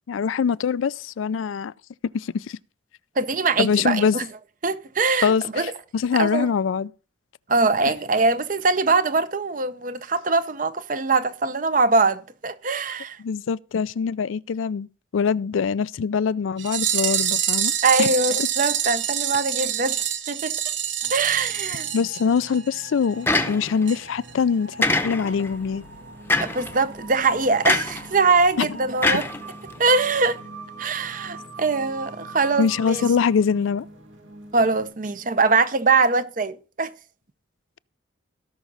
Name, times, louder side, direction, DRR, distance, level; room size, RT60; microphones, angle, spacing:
voice 1, 0.1-1.7 2.1-2.6 3.6-4.2 5.2-6.9 13.2-14.9 15.1-17.7 18.0-18.1 21.9-25.8 28.6-28.7 32.6-33.9, left 6 dB, 90° left, 0.4 m, -23 dB
voice 2, 3.2-4.2 4.6-5.7 6.2-6.5 7.5-13.2 17.8-20.5 21.1-21.9 26.4-29.3 29.8-30.4 30.8-33.1 34.5-36.9, right 3 dB, 45° right, 0.6 m, -22 dB
sound 1, 16.6-22.8 23.0-23.1 23.4-23.5 23.9-24.0 24.3-24.4, right 9 dB, 70° right, 1.2 m, -26 dB
sound 2, 21.0-34.8, right 2 dB, 85° right, 2.6 m, -42 dB
sound 3, 23.3-23.9 24.8-25.5 26.3-26.7 27.6-28.1 29.0-29.9, left 2 dB, 10° left, 0.8 m, -23 dB
17.0 x 6.0 x 3.9 m
head